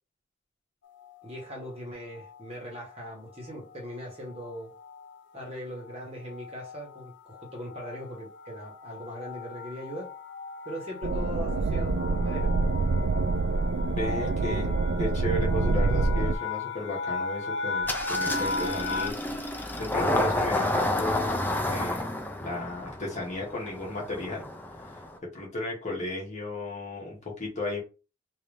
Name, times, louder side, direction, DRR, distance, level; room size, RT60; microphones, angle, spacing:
sound 1, 1.0-1.5 2.2-2.6 2.9-3.1 3.3-19.1, left 3 dB, 65° left, 0.4 m, -37 dB
voice 1, 1.2-4.7 5.3-10.1 10.6-12.5, equal, 30° right, 1.4 m, -40 dB
sound 2, 11.0-16.4, right 3 dB, 75° right, 0.4 m, -26 dB
voice 2, 13.8-22.1 22.4-24.5 24.9-27.8, left 2 dB, 35° left, 1.7 m, -34 dB
Engine starting, 17.8-25.2, left 1 dB, 10° left, 0.5 m, -30 dB
3.7 x 2.8 x 3.3 m
head